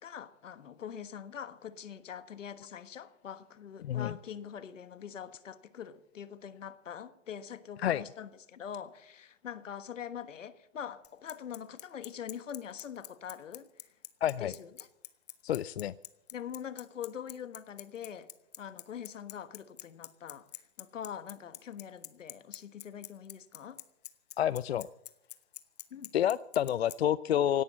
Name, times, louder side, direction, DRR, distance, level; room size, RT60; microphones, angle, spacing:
voice 1, 0.0-13.7 14.4-14.9 16.3-18.3 18.6-20.5 20.8-23.8 25.9-26.1, left 8 dB, 80° left, 1.4 m, -43 dB
voice 2, 3.8-4.2 7.8-8.0 14.2-14.5 15.4-15.9 24.4-24.9 26.1-27.6, left 10 dB, 60° left, 0.5 m, -29 dB
Bicycle, 11.0-27.0, left 12 dB, 35° left, 0.7 m, -44 dB
17.5 x 10.5 x 7.4 m
hypercardioid pair, 165°, 37 cm